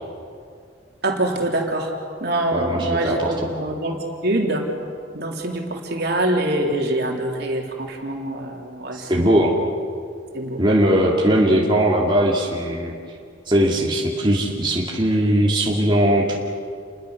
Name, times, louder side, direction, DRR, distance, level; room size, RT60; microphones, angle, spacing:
voice 1, 1.0-1.9 2.2-4.6 5.1-9.3 10.3-10.6 11.5-11.6, right 1 dB, 55° right, 1 dB, 3.5 m, -24 dB
voice 2, 2.5-3.3 8.9-9.5 10.6-12.9 13.5-16.4, right 1 dB, 25° right, -3 dB, 2.5 m, -19 dB
29.5 x 22.5 x 6.6 m, 2.3 s
head